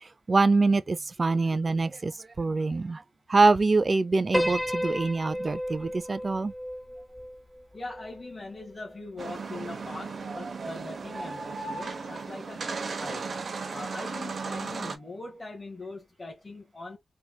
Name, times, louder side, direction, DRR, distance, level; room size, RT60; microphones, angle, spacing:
voice 1, 0.0-3.0 3.3-6.5, right 3 dB, 40° right, 0.5 m, -24 dB
Piano, 4.3-8.7, equal, 10° left, 0.7 m, -33 dB
voice 2, 7.7-12.6 13.0-13.3 13.7-17.0, left 2 dB, 30° left, 1.7 m, -41 dB
sound 1, 9.2-15.0, right 4 dB, 60° right, 0.9 m, -35 dB
4.1 x 3.4 x 2.3 m
cardioid pair, 70°, 0 cm